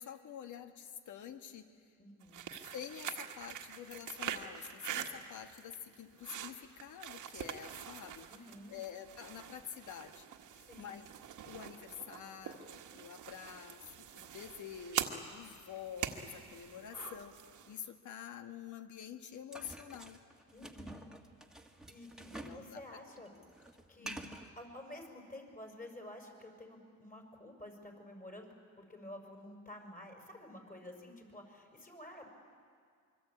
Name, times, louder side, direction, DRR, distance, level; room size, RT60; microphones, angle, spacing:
voice 1, 0.0-1.7 2.7-8.3 8.7-10.3 10.5-11.1 11.4-17.4 17.7-20.2 22.3-23.0 23.3-23.4 24.0-24.4, left 8 dB, 70° left, 7 dB, 1.9 m, -48 dB
voice 2, 2.0-2.4 8.3-8.8 10.6-11.0 20.5-21.0 21.6-23.3 23.9-24.2 24.6-28.5 28.8-32.3, left 1 dB, 25° left, 2 dB, 5.9 m, -51 dB
sound 1, 2.2-17.8, right 9 dB, 75° right, 1.7 m, -44 dB
sound 2, 19.5-22.7 22.9-24.5, right 1 dB, ahead, 1.9 m, -49 dB
25.0 x 23.5 x 8.7 m, 2.1 s
cardioid pair, 105°, 32 cm